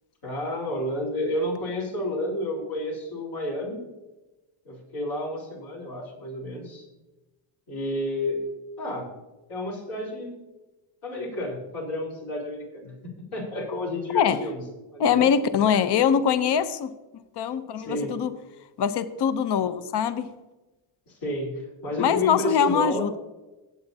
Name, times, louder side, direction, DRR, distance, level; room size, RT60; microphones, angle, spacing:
voice 1, 0.2-3.9 4.6-6.9 7.7-8.4 8.8-9.1 9.5-10.3 11.0-14.6 14.9-15.3 15.7-15.8 17.8-18.1 21.1-23.1, left 1 dB, 70° left, -3 dB, 4.1 m, -31 dB
voice 2, 15.0-16.9 17.4-18.3 18.8-20.3 22.0-23.2, left 7 dB, 55° left, 13 dB, 0.7 m, -23 dB
17.0 x 8.0 x 2.7 m, 1.1 s
cardioid pair, 105°, 50 cm